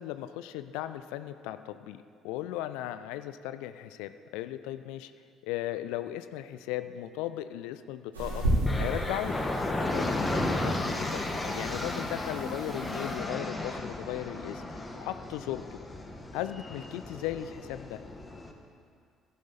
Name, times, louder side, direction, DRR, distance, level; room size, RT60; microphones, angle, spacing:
voice 1, 0.0-5.1 5.4-8.5 8.8-9.4 9.9-15.8 16.3-18.0, left 13 dB, 65° left, 12 dB, 0.4 m, -37 dB
sound 1, 8.1-13.1, right 1 dB, 80° right, 3.2 m, -34 dB
sound 2, 8.6-18.5, left 2 dB, 20° left, 1.4 m, -34 dB
15.5 x 11.5 x 4.0 m, 2.2 s
figure-of-eight pair, 50°, 0 cm